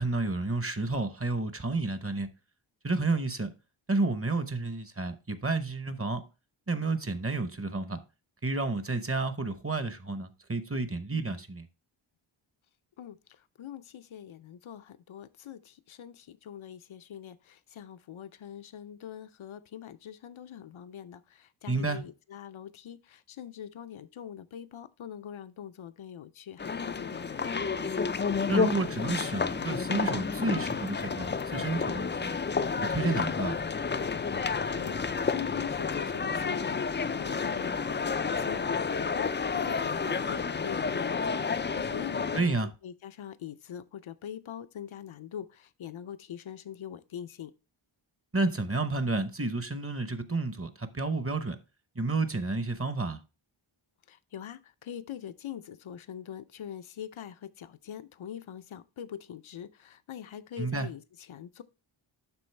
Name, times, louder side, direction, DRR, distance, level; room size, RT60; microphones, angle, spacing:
voice 1, 0.0-2.3 2.8-3.5 3.9-6.2 6.7-8.0 8.4-11.7 21.7-22.0 28.5-32.4 32.9-33.6 42.3-42.7 48.3-51.6 52.0-53.2 60.6-60.9, right 3 dB, 25° right, 0.8 m, -30 dB
voice 2, 13.0-27.7 34.5-47.5 54.1-61.6, left 9 dB, 70° left, 0.7 m, -43 dB
sound 1, 26.6-42.4, left 5 dB, 25° left, 0.3 m, -30 dB
11.5 x 3.9 x 3.3 m
wide cardioid pair, 85°, 50 cm